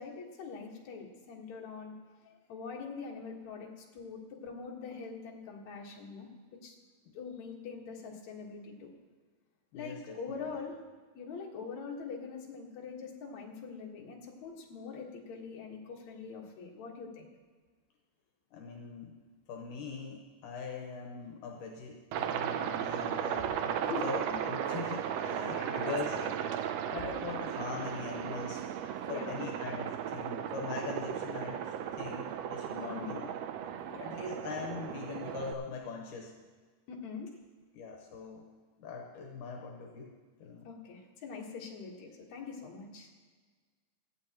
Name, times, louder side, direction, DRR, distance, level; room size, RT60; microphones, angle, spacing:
voice 1, 0.0-2.0 2.2-6.3 6.6-6.8 7.1-8.9 9.7-10.7 11.1-17.3 23.8-24.2 25.2-26.3 29.0-29.6 32.9-33.2 33.8-34.1 36.9-37.3 40.6-43.1, left 5 dB, 65° left, -2 dB, 2.8 m, -43 dB
voice 2, 9.7-10.2 10.5-10.6 18.5-19.2 19.5-26.2 26.9-28.6 29.1-33.3 34.0-36.3 37.7-38.4 38.8-40.1 40.4-40.7, left 5 dB, 80° left, 1 dB, 2.7 m, -41 dB
Aircraft, 22.1-35.5, right 9 dB, 85° right, 1.4 m, -36 dB
17.5 x 12.5 x 3.0 m, 1.4 s
omnidirectional pair, 3.6 m